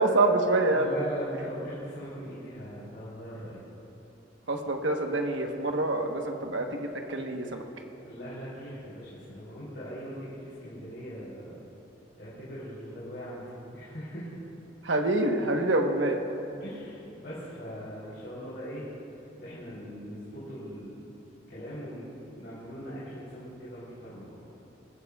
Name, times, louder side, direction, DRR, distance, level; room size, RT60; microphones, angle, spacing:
voice 1, 0.0-0.9 4.5-7.6 14.8-16.2, right 2 dB, 85° right, 3 dB, 1.1 m, -26 dB
voice 2, 0.7-3.6 8.0-11.6 12.2-13.4 13.7-14.3 16.6-18.8 19.4-21.0 21.5-24.4, equal, 60° left, -9 dB, 3.6 m, -40 dB
23.0 x 14.5 x 2.4 m, 2.8 s
head